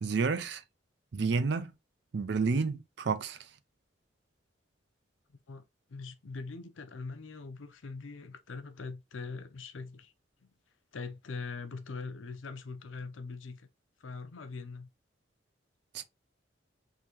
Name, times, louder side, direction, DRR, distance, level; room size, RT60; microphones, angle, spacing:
voice 1, 0.0-0.6 1.1-1.7 2.1-3.4 15.9-16.0, right 4 dB, 60° right, 0.4 m, -30 dB
voice 2, 5.9-10.1 10.9-13.7 14.0-14.9, left 4 dB, 90° left, 0.6 m, -42 dB
3.7 x 2.7 x 2.9 m
head